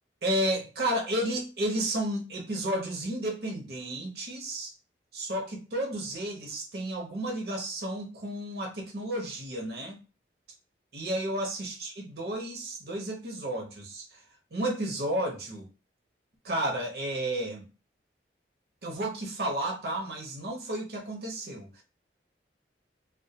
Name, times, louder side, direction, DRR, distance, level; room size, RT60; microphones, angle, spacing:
voice 1, 0.2-4.7 5.1-10.0 10.9-14.2 14.5-15.7 16.4-17.7 18.8-21.8, right 1 dB, 60° right, 0.7 m, -32 dB
2.1 x 2.1 x 2.7 m
head